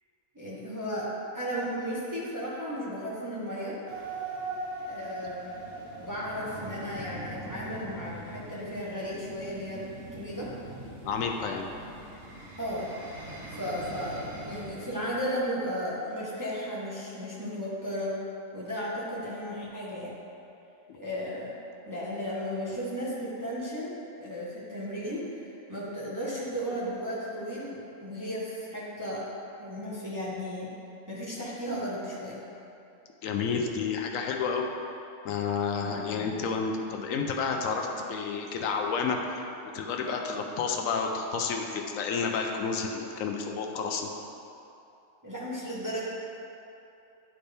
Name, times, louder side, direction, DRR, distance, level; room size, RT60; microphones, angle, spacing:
voice 1, 0.3-3.8 4.9-5.6 6.0-9.9 10.1-10.5 12.6-12.9 13.5-18.1 18.5-20.1 20.9-21.5 21.9-29.3 29.6-30.7 31.1-32.4 35.8-36.3 45.2-46.0, equal, 15° right, -7 dB, 1.0 m, -35 dB
sound 1, 3.9-15.2, right 2 dB, 85° right, 1.7 m, -41 dB
voice 2, 11.0-11.7 33.2-34.7 35.2-39.4 39.7-44.1, left 5 dB, 85° left, 2 dB, 1.0 m, -30 dB
11.0 x 4.4 x 3.4 m, 2.8 s
omnidirectional pair, 1.4 m